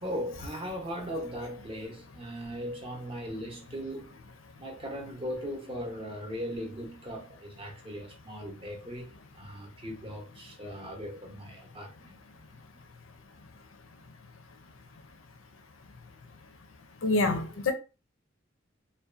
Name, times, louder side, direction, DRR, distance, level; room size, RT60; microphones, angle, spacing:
voice 1, 0.0-4.1 4.6-12.2, equal, 30° right, 0.6 m, -38 dB
voice 2, 17.0-17.7, left 2 dB, 85° left, 0.5 m, -26 dB
2.5 x 2.1 x 2.4 m
head